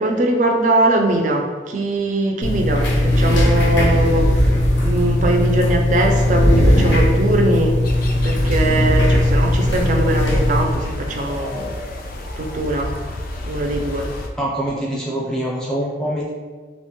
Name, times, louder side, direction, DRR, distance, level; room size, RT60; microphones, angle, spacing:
voice 1, 0.0-7.8 8.2-11.8 12.4-12.9 13.5-14.1, right 2 dB, 45° right, 2 dB, 0.4 m, -21 dB
sound 1, 2.4-10.6, left 1 dB, 90° left, 0.6 m, -17 dB
sound 2, 7.8-14.3, left 1 dB, 50° left, 0.3 m, -30 dB
voice 2, 14.4-16.3, right 1 dB, 5° left, -5 dB, 0.5 m, -24 dB
2.9 x 2.1 x 2.9 m, 1.4 s
head